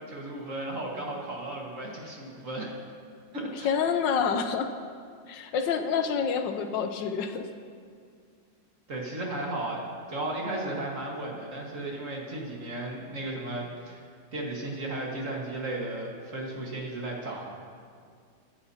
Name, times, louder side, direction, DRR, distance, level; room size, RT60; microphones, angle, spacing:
voice 1, 0.1-2.7 3.3-3.7 8.9-14.0 14.3-17.5, right 2 dB, 45° right, -2 dB, 2.0 m, -35 dB
voice 2, 3.6-4.7 5.3-7.5, left 6 dB, 85° left, 7 dB, 1.5 m, -27 dB
22.5 x 11.0 x 2.8 m, 2.2 s
omnidirectional pair, 1.9 m